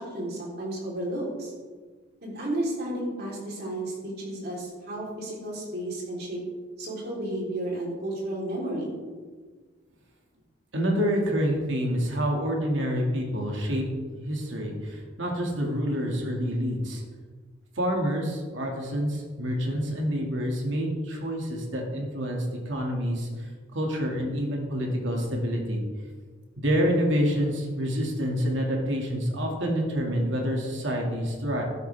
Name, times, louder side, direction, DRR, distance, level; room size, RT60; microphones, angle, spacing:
voice 1, 0.0-1.5 2.2-6.4 6.8-9.0, right 1 dB, 55° right, -3 dB, 3.8 m, -32 dB
voice 2, 10.7-17.0 17.8-25.8 26.6-31.6, equal, 70° right, 0 dB, 2.2 m, -27 dB
12.0 x 11.0 x 3.5 m, 1.5 s
head